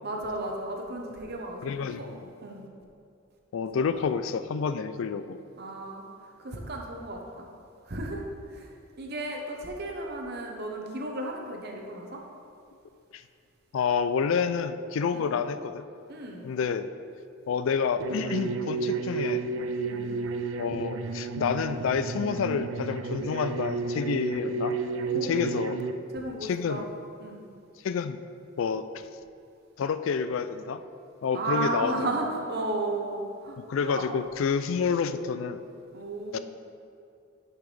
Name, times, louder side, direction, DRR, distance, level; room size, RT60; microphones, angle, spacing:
voice 1, 0.0-2.1 2.4-2.7 5.6-6.1 6.4-7.5 7.9-12.2 15.1-15.3 16.1-16.5 19.9-20.2 25.0-25.7 26.1-26.9 27.2-27.4 31.3-34.1 35.9-36.4, right 2 dB, 50° right, 1 dB, 0.9 m, -34 dB
voice 2, 1.6-2.3 3.5-5.4 13.1-13.2 13.7-15.8 16.4-16.9 17.5-19.5 20.6-24.8 25.2-25.8 26.4-26.9 27.8-28.2 28.6-28.9 29.8-30.8 31.2-31.9 33.7-35.6 36.3-36.4, left 6 dB, 70° left, 11 dB, 0.3 m, -28 dB
sound 1, 18.0-25.9, right 4 dB, 70° right, 0.4 m, -32 dB
9.2 x 5.8 x 3.4 m, 2.4 s
head